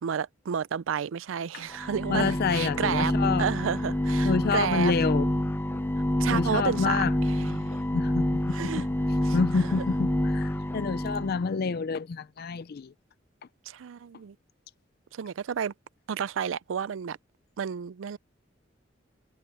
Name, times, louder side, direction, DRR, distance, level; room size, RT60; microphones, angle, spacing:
voice 1, 0.0-3.1 3.4-4.9 6.2-7.8 8.5-8.9 9.2-9.9 13.7-14.4 15.1-15.7 16.1-17.2 17.6-18.2, right 7 dB, 80° right, 0.4 m, -31 dB
sound 1, 1.7-11.4, left 1 dB, 10° left, 0.7 m, -28 dB
voice 2, 2.1-3.5 4.2-5.3 6.3-7.1 7.9-8.8 9.3-12.9, left 4 dB, 50° left, 0.4 m, -28 dB
head